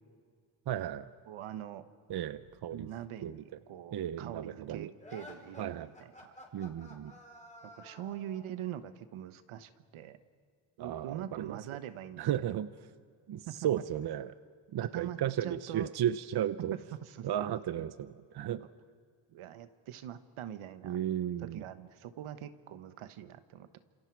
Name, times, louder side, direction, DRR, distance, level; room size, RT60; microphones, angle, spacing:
voice 1, 0.7-1.1 2.1-2.9 3.2-3.4 3.9-4.9 5.6-5.9 6.5-7.1 10.8-11.6 12.2-12.7 13.3-14.3 14.7-16.8 17.2-18.6 20.8-21.6, right 10 dB, 50° right, 13 dB, 0.8 m, -34 dB
voice 2, 1.3-1.8 2.7-6.3 7.7-10.2 10.8-12.6 13.5-13.7 14.8-15.9 16.7-17.3 18.6-18.7 19.3-21.0 21.4-23.8, right 11 dB, 85° right, 11 dB, 1.3 m, -43 dB
sound 1, 5.0-8.5, left 1 dB, 15° left, 4.6 m, -52 dB
29.5 x 27.0 x 4.7 m, 2.1 s
cardioid pair, 105°, 49 cm